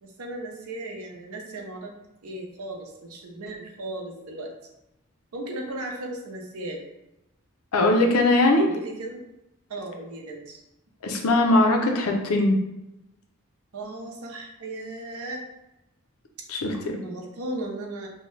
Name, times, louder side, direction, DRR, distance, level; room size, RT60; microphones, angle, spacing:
voice 1, 0.0-1.9 2.2-4.5 5.3-6.8 8.6-9.3 9.7-10.6 13.7-15.4 16.9-18.1, right 2 dB, 90° right, 0 dB, 0.6 m, -36 dB
voice 2, 7.7-8.7 11.0-12.6 16.5-16.8, left 2 dB, 85° left, 2 dB, 0.5 m, -20 dB
2.7 x 2.1 x 3.1 m, 0.92 s
head